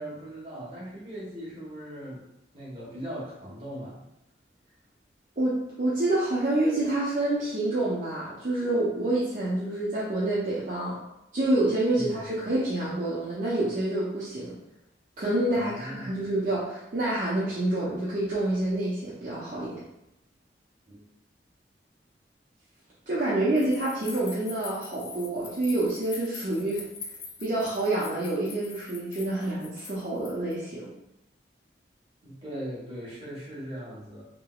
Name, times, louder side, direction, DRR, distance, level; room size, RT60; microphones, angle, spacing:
voice 1, 0.0-2.2 2.5-4.0 11.9-12.2 15.5-16.1 20.9-21.0 32.2-34.2, equal, 30° right, -7 dB, 1.2 m, -39 dB
voice 2, 5.4-11.0 11.3-14.6 15.2-19.8 23.1-26.8 27.4-30.9, right 1 dB, 50° right, -8 dB, 0.6 m, -27 dB
sound 1, 23.6-30.5, left 5 dB, 30° left, 0.3 m, -44 dB
3.3 x 2.9 x 2.3 m, 0.85 s
head